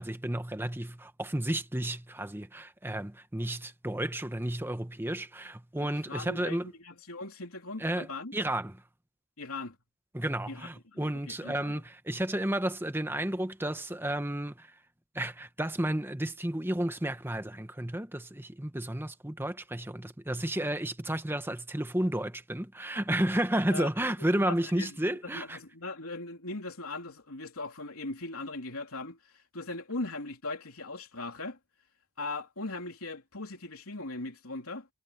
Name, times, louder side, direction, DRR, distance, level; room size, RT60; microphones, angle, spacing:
voice 1, 0.0-6.7 7.8-8.1 8.3-8.7 10.1-14.7 15.1-25.6, right 1 dB, 10° right, 1.1 m, -32 dB
voice 2, 5.8-8.4 9.4-9.8 10.5-11.8 23.7-23.9 24.3-31.6 32.2-34.9, left 2 dB, 75° left, 3.3 m, -39 dB
head